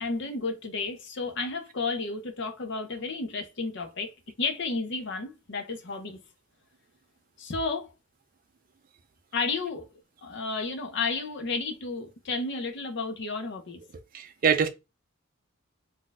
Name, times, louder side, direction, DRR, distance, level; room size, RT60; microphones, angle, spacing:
voice 1, 0.0-6.2 7.4-7.9 9.3-13.8, left 4 dB, 60° left, 0.7 m, -32 dB
voice 2, 14.1-14.7, right 6 dB, 45° right, 0.4 m, -24 dB
2.6 x 2.3 x 3.9 m
head